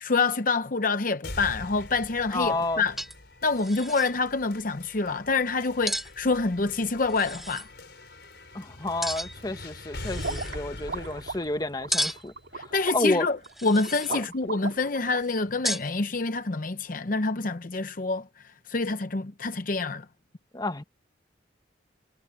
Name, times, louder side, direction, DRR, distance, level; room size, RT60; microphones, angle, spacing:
voice 1, 0.0-3.0 3.4-7.7 12.5-13.4 13.6-18.2 18.7-20.1, left 3 dB, 45° left, 0.8 m, -27 dB
sound 1, 1.2-13.2, left 1 dB, 65° left, 5.4 m, -43 dB
voice 2, 2.3-2.9 8.5-13.3 14.1-14.2 20.5-20.8, left 2 dB, 20° left, 1.2 m, -30 dB
sound 2, 2.5-2.6 3.0-3.3 3.6-4.1 5.9-6.1 7.1-7.7 9.0-9.5 10.0-10.5 11.9-12.4 13.4-14.2 15.6-15.9, equal, ahead, 0.7 m, -33 dB
sound 3, 10.2-15.2, right 4 dB, 70° right, 2.8 m, -37 dB
head